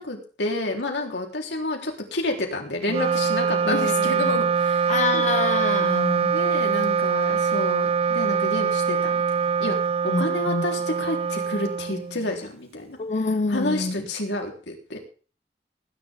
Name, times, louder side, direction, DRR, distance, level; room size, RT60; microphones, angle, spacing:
voice 1, 0.0-5.3 6.3-9.8 10.0-13.0 13.5-15.0, left 2 dB, 80° left, 4.0 m, -30 dB
Wind instrument woodwind instrument, 2.8-12.4, right 6 dB, 35° right, 0.6 m, -23 dB
voice 2, 3.7-4.5 4.9-6.4 10.1-10.6 13.0-14.0, left 3 dB, 40° left, 0.7 m, -27 dB
19.5 x 11.0 x 3.8 m
head